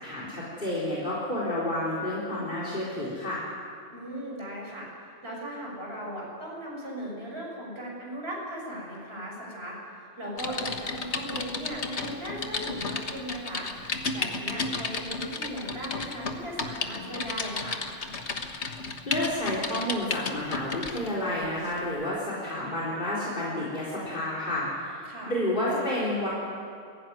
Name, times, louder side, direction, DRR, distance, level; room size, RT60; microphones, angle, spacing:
voice 1, 0.0-3.4 19.1-26.3, left 1 dB, 40° left, -6 dB, 4.1 m, -30 dB
voice 2, 3.9-4.9 5.2-13.7 14.1-17.8 25.0-25.3, equal, 55° right, -3 dB, 6.8 m, -37 dB
Typing, 10.4-21.1 21.6-21.8, left 4 dB, 60° left, 1.7 m, -33 dB
22.5 x 16.0 x 9.6 m, 2.4 s
omnidirectional pair, 1.3 m